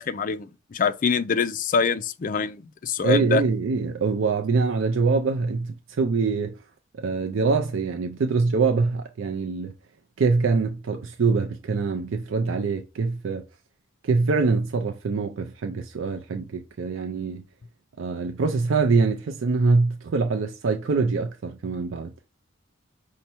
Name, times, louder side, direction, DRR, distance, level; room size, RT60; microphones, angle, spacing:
voice 1, 0.0-3.4, left 5 dB, 40° left, 0.3 m, -25 dB
voice 2, 3.0-6.6 7.0-9.7 10.2-13.4 14.0-17.4 18.0-22.1, right 4 dB, 75° right, 0.4 m, -24 dB
5.4 x 2.1 x 4.3 m
head